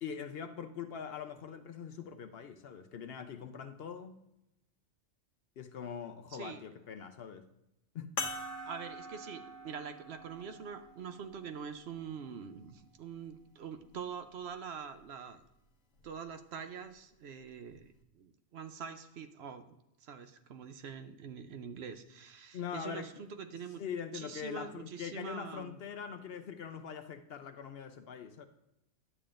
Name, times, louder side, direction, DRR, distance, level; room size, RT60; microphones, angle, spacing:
voice 1, 0.0-4.2 5.6-7.4 7.9-8.1 22.5-23.2 23.8-28.4, left 7 dB, 60° left, 0.8 m, -42 dB
voice 2, 6.3-6.6 8.7-15.4 16.0-19.6 20.0-23.8 24.1-25.8, right 6 dB, 65° right, 0.9 m, -44 dB
sound 1, 8.2-13.0 13.8-13.9 16.0-16.1, left 2 dB, 80° left, 1.1 m, -44 dB
11.0 x 8.6 x 2.5 m
omnidirectional pair, 1.2 m